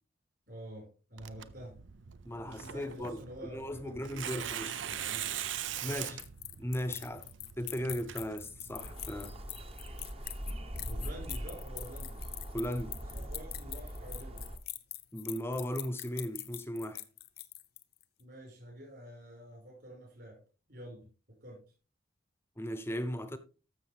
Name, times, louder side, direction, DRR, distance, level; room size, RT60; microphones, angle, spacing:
voice 1, 0.5-1.7 2.4-5.3 5.8-6.1 10.9-12.2 13.1-14.4 18.2-20.4 20.7-21.0 21.4-21.6, right 1 dB, 55° right, 5.4 m, -48 dB
Tearing, 1.2-8.9, right 10 dB, 75° right, 0.6 m, -42 dB
voice 2, 2.3-3.2 3.5-4.7 5.8-6.2 6.6-7.2 7.6-9.3 12.5-13.0 15.1-17.0 22.6-23.4, equal, 10° left, 0.7 m, -37 dB
Spider Chattering, 5.5-18.0, left 16 dB, 50° left, 0.7 m, -44 dB
sound 1, 8.7-14.6, equal, 30° right, 1.0 m, -41 dB
13.0 x 6.8 x 3.4 m
head